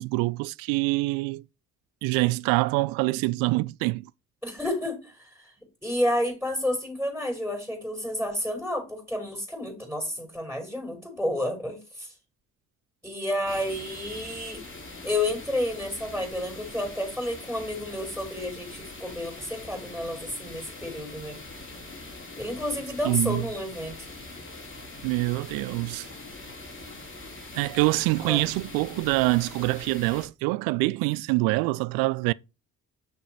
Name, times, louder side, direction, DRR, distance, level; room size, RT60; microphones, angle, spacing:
voice 1, 0.0-1.4 2.0-4.1 23.0-23.4 25.0-26.1 27.5-32.3, right 23 dB, 55° right, 0.5 m, -25 dB
voice 2, 4.4-5.5 5.8-12.1 13.0-14.6 15.0-21.4 22.4-23.9 28.2-28.4, left 1 dB, ahead, 5.5 m, -30 dB
sound 1, 13.5-30.3, left 2 dB, 30° left, 3.7 m, -43 dB
7.1 x 6.3 x 4.8 m
figure-of-eight pair, 45°, 42 cm